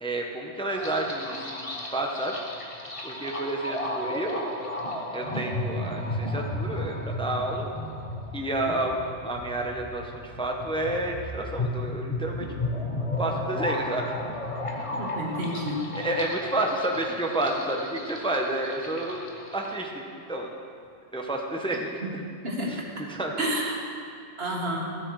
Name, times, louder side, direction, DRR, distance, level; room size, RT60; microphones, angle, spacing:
voice 1, 0.0-2.3 3.0-4.6 5.1-7.7 8.3-12.5 13.2-14.1 15.9-20.0 20.3-20.5 21.1-22.2 22.7-23.4, right 1 dB, 5° left, 1 dB, 0.7 m, -30 dB
sound 1, 0.7-19.7, left 1 dB, 30° left, 1.1 m, -34 dB
voice 2, 15.0-15.8 22.0-22.1 22.4-22.7 23.4-23.8 24.4-24.9, right 1 dB, 55° right, -2 dB, 1.8 m, -29 dB
14.5 x 7.6 x 4.7 m, 2.3 s
omnidirectional pair, 1.3 m